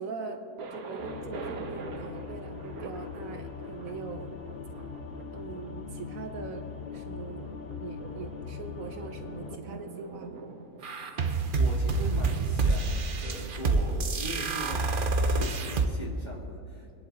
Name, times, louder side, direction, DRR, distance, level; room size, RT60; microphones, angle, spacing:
voice 1, 0.0-4.4 5.3-7.5 7.7-10.6, right 4 dB, 65° right, 6 dB, 1.3 m, -41 dB
Thunder, 0.6-12.4, right 5 dB, 85° right, 1.5 m, -45 dB
sound 1, 1.0-9.6, left 6 dB, 50° left, 0.8 m, -41 dB
sound 2, 10.8-15.9, right 3 dB, 45° right, 0.9 m, -27 dB
voice 2, 11.2-17.0, equal, 30° left, -2 dB, 2.1 m, -40 dB
25.0 x 10.5 x 3.9 m, 2.5 s
omnidirectional pair, 1.5 m